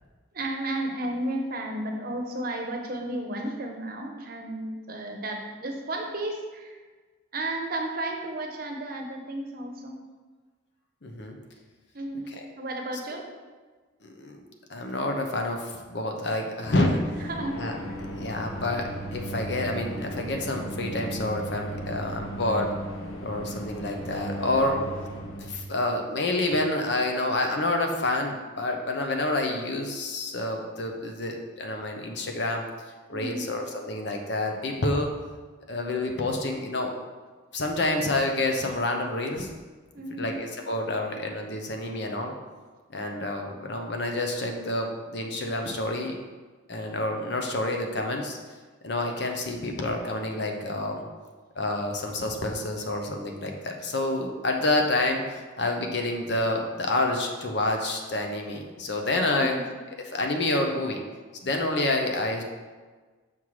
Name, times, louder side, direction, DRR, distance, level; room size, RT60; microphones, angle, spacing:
voice 1, 0.3-6.8 7.3-10.0 11.9-13.3 17.2-17.6 17.9-18.0 33.1-33.5 39.9-40.4 59.3-59.7, right 1 dB, 45° right, 2 dB, 0.8 m, -33 dB
voice 2, 11.0-11.4 14.0-14.4 14.7-17.0 17.6-17.8 18.2-22.7 23.2-24.8 25.4-32.6 33.1-35.1 35.7-36.9 37.5-39.5 40.2-42.3 42.9-46.1 46.7-48.4 48.8-51.1 51.6-59.6 60.1-61.0 61.4-62.4, left 2 dB, 55° left, 3 dB, 0.7 m, -28 dB
sound 1, 16.7-25.5, right 1 dB, 85° left, 0.9 m, -36 dB
6.0 x 5.5 x 3.2 m, 1.4 s
head